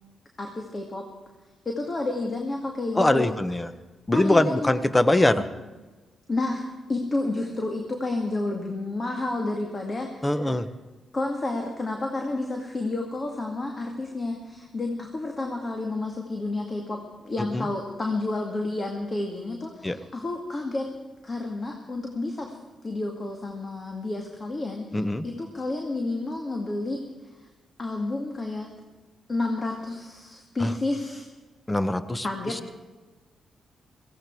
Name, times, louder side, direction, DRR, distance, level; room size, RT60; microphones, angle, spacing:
voice 1, 0.4-1.1 1.6-3.4 4.1-4.7 5.4-5.5 6.3-10.6 11.1-20.9 21.2-22.6 22.8-27.5 27.8-28.7 29.3-31.3 32.2-32.8, left 2 dB, 40° left, 2 dB, 2.2 m, -30 dB
voice 2, 2.9-3.7 4.1-5.5 10.2-10.7 17.5-17.7 19.8-20.0 24.9-25.3 30.6-30.7 31.7-32.6, left 1 dB, 20° left, 12 dB, 1.1 m, -23 dB
17.0 x 16.0 x 4.7 m, 1.2 s
supercardioid pair, 55°, 0 cm